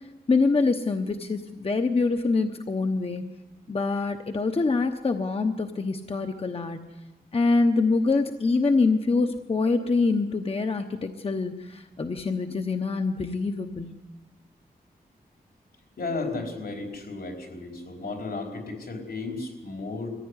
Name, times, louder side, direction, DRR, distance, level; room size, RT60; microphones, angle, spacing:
voice 1, 0.3-3.2 3.7-6.9 7.3-14.0, left 3 dB, 35° left, 6 dB, 1.0 m, -25 dB
voice 2, 16.0-20.1, left 3 dB, 80° left, 2 dB, 4.5 m, -34 dB
23.0 x 15.5 x 9.8 m, 1.2 s
wide cardioid pair, 120°, 16 cm